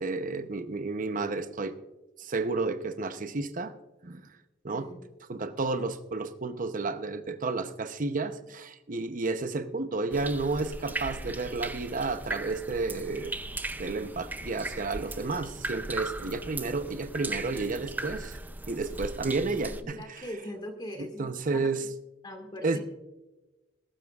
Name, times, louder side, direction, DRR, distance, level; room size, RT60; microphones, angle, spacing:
voice 1, 0.0-1.7 2.2-3.7 4.0-4.3 4.6-4.9 5.3-13.3 13.8-18.4 18.7-20.2 21.0-21.8 22.6-22.8, right 3 dB, 45° right, 10 dB, 0.8 m, -31 dB
sound 1, 10.1-19.8, right 2 dB, 10° right, 0.5 m, -38 dB
voice 2, 19.6-21.7 22.2-22.8, left 1 dB, 25° left, 4 dB, 1.9 m, -41 dB
20.5 x 12.5 x 2.4 m, 1.1 s
head